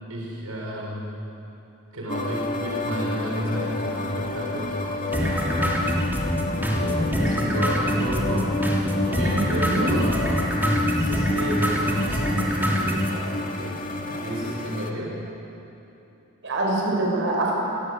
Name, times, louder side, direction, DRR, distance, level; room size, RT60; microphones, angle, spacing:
voice 1, 0.1-1.1 1.9-6.1 6.8-8.5 8.8-10.6 10.9-15.2, equal, 80° right, -2 dB, 6.1 m, -32 dB
sound 1, 2.1-14.9, left 2 dB, 40° left, 2.3 m, -30 dB
sound 2, 5.1-13.1, equal, 10° right, 3.5 m, -25 dB
voice 2, 9.3-9.9 16.4-17.6, right 2 dB, 60° right, -2 dB, 6.8 m, -24 dB
29.5 x 21.0 x 8.2 m, 3.0 s
head